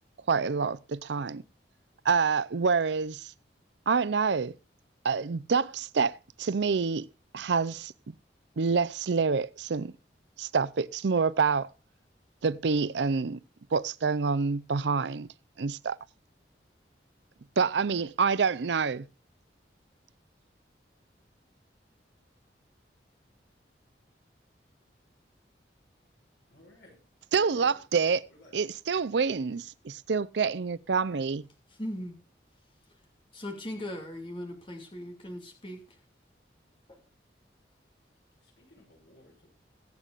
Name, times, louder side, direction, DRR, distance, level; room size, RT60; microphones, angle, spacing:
voice 1, 0.3-1.4 2.0-3.3 3.9-4.5 5.0-7.1 7.3-8.1 8.6-9.9 10.4-11.7 12.4-13.4 13.7-15.3 15.6-16.0 17.6-19.1 27.3-28.2 28.5-31.4, right 5 dB, 75° right, 0.5 m, -27 dB
voice 2, 26.5-27.0 27.5-27.8 28.3-28.5 31.0-31.2 38.4-39.5, left 1 dB, 80° left, 6.6 m, -55 dB
voice 3, 31.7-32.1 33.3-35.8, left 1 dB, 30° left, 2.4 m, -38 dB
22.5 x 8.2 x 2.5 m
head